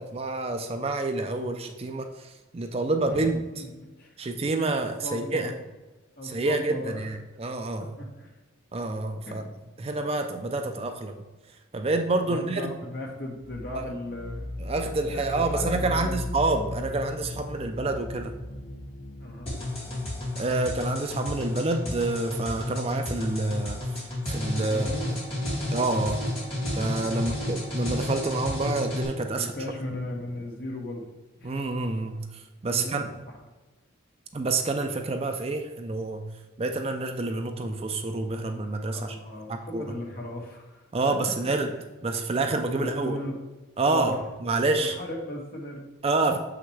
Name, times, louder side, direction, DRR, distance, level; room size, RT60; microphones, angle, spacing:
voice 1, 0.0-3.4 4.2-5.5 6.2-8.0 8.7-9.4 9.8-11.2 11.7-12.7 14.6-18.4 20.4-23.8 24.3-24.9 25.7-26.2 26.7-29.5 31.4-33.1 34.3-36.3 36.6-39.2 39.5-39.8 40.9-41.7 42.0-43.2 43.8-45.0 46.0-46.4, right 2 dB, 30° right, 6 dB, 0.4 m, -28 dB
voice 2, 5.0-5.5 6.2-7.0 8.0-8.3 9.2-9.5 12.3-14.5 14.9-16.1 19.2-19.5 24.7-25.1 26.9-27.4 29.3-31.1 31.4-31.6 32.7-33.1 38.9-40.8 41.7-41.8 42.8-43.3 43.8-44.2 44.8-45.9, left 1 dB, 50° left, 0 dB, 1.3 m, -37 dB
sound 1, 13.4-22.0, left 1 dB, 75° left, 0.8 m, -37 dB
sound 2, 19.5-29.1, left 1 dB, 30° left, 2.0 m, -31 dB
6.9 x 5.8 x 3.3 m, 1.2 s
head